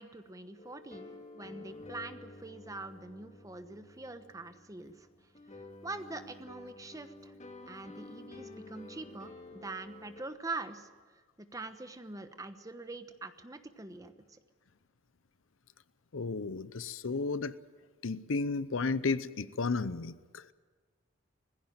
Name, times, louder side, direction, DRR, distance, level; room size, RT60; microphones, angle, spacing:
voice 1, 0.0-5.1 5.8-7.3 7.7-10.9 11.4-14.4, right 3 dB, 15° right, 1.1 m, -44 dB
sound 1, 0.6-10.2, left 2 dB, 35° left, 2.0 m, -51 dB
voice 2, 16.1-17.5 18.0-20.5, left 4 dB, 75° left, 0.7 m, -33 dB
19.5 x 16.0 x 9.2 m
head